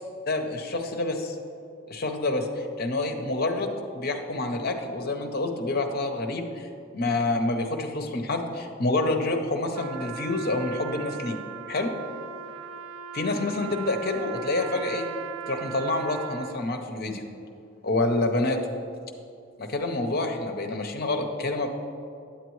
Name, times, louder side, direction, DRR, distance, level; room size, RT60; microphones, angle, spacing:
voice 1, 0.3-1.4 1.9-6.7 6.9-11.4 11.7-11.9 13.1-15.1 15.5-17.2 17.8-18.6 19.6-21.7, left 2 dB, 45° left, 4 dB, 0.7 m, -27 dB
Trumpet, 9.7-16.7, right 9 dB, 85° right, 0.3 m, -39 dB
8.7 x 8.1 x 3.1 m, 2.5 s
head